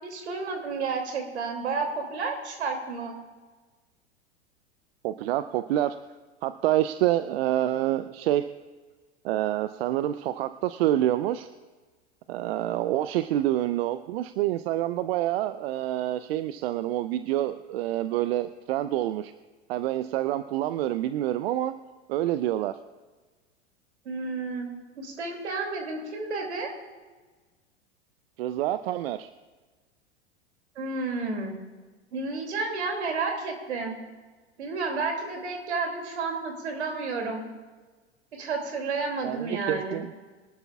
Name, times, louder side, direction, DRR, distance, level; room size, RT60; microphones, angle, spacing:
voice 1, 0.0-3.1 24.0-26.7 30.8-31.5 32.1-34.0 34.6-37.4 38.3-40.0, right 4 dB, 75° right, 3 dB, 2.7 m, -31 dB
voice 2, 5.0-6.0 6.4-8.5 9.2-11.5 12.3-19.3 19.7-21.7 22.1-22.8 28.4-29.3 39.2-40.1, right 13 dB, 60° right, 12 dB, 0.6 m, -27 dB
23.5 x 12.0 x 2.4 m, 1.3 s
hypercardioid pair, 90°, 34 cm